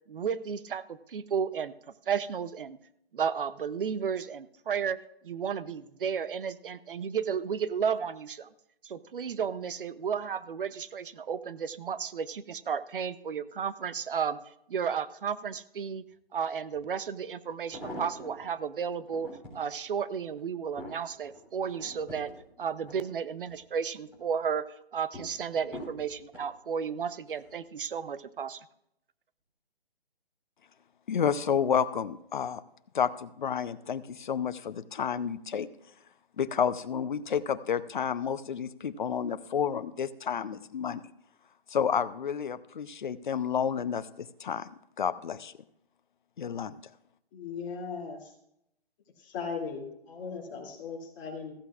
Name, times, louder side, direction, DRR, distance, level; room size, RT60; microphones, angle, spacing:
voice 1, 0.1-1.7 2.1-2.8 3.1-5.0 5.2-8.5 8.8-14.4 14.7-16.0 16.3-22.3 22.6-28.6, right 7 dB, 60° right, 15 dB, 0.7 m, -33 dB
sound 1, 16.7-16.8 17.5-18.5 19.0-19.7 20.2-23.6 24.0-24.5 25.1-26.5 27.3-27.6 27.9-28.0, equal, 5° right, 3.4 m, -45 dB
voice 2, 31.1-32.6 32.9-35.7 36.4-41.0 41.7-44.7 45.0-45.5 46.4-46.8, left 7 dB, 50° left, 14 dB, 0.7 m, -30 dB
voice 3, 47.3-48.3 49.2-51.5, left 5 dB, 20° left, -3 dB, 2.7 m, -38 dB
15.0 x 14.0 x 2.4 m, 0.78 s
hypercardioid pair, 165°, 31 cm